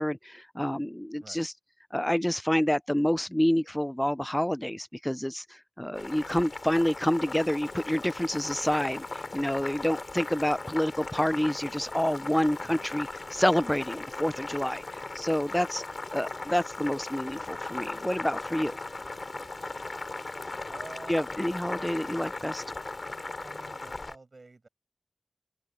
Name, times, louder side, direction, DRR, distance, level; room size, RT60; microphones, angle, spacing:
voice 1, 0.0-1.5 1.9-15.8 16.1-18.8 21.1-22.6, equal, 10° left, 0.3 m, -28 dB
Boiling, 5.9-24.2, left 3 dB, 65° left, 2.7 m, -38 dB
voice 2, 20.7-21.2 23.4-24.7, right 3 dB, 70° right, 6.8 m, -48 dB
open air
wide cardioid pair, 45°, 0 cm